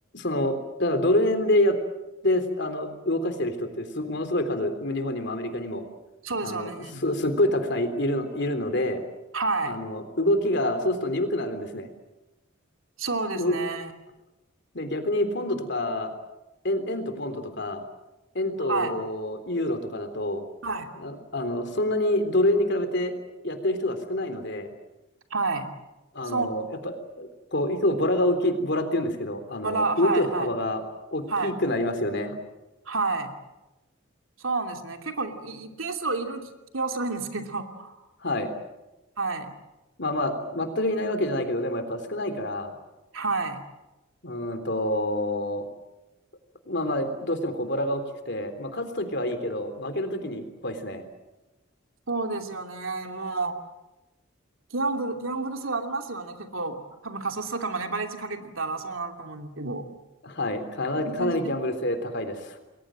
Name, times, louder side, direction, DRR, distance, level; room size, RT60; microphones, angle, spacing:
voice 1, 0.1-1.8 2.2-5.8 6.4-9.0 9.6-11.9 13.3-13.5 14.7-16.1 16.6-17.8 18.3-20.4 21.0-23.1 23.4-24.7 26.1-30.8 31.1-32.4 38.2-38.5 40.0-42.7 44.2-45.6 46.7-51.0 60.2-62.6, left 1 dB, 55° left, 8 dB, 3.5 m, -27 dB
voice 2, 6.2-7.0 9.3-9.8 13.0-13.9 18.7-18.9 20.6-20.9 25.3-25.7 26.2-26.5 29.6-30.5 31.3-31.5 32.9-33.3 34.4-38.0 39.2-39.5 43.1-43.6 52.1-53.6 54.7-59.9 60.9-61.4, right 3 dB, 85° right, 5 dB, 2.8 m, -30 dB
29.0 x 21.5 x 7.7 m, 1.0 s
head